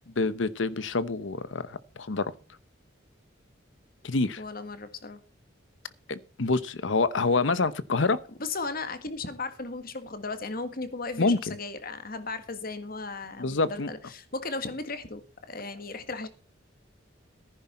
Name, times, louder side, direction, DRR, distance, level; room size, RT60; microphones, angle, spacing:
voice 1, 0.1-2.3 4.0-4.4 6.1-8.2 11.2-11.6 13.4-13.9, left 3 dB, 75° left, 0.9 m, -27 dB
voice 2, 4.4-5.2 8.4-16.3, left 3 dB, 50° left, 1.6 m, -36 dB
14.5 x 10.0 x 4.3 m
head